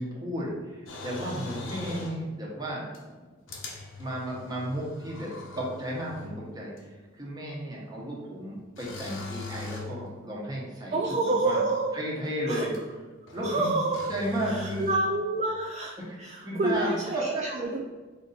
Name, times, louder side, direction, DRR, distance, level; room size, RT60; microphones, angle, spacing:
voice 1, 0.0-3.3 4.0-11.6 11.9-12.7 13.3-13.7 14.1-14.9 16.0-17.4, right 1 dB, 20° right, -4 dB, 1.1 m, -34 dB
sound 1, 0.9-2.2 2.9-3.0 3.5-6.4 6.8-6.9 8.8-10.0 12.7-12.8 13.3-13.6 13.9-14.9, left 4 dB, 75° left, 0.9 m, -41 dB
voice 2, 10.9-12.0 12.5-12.7 13.4-14.1 14.4-17.8, right 2 dB, 35° right, 1 dB, 0.4 m, -28 dB
4.5 x 2.7 x 3.9 m, 1.3 s
head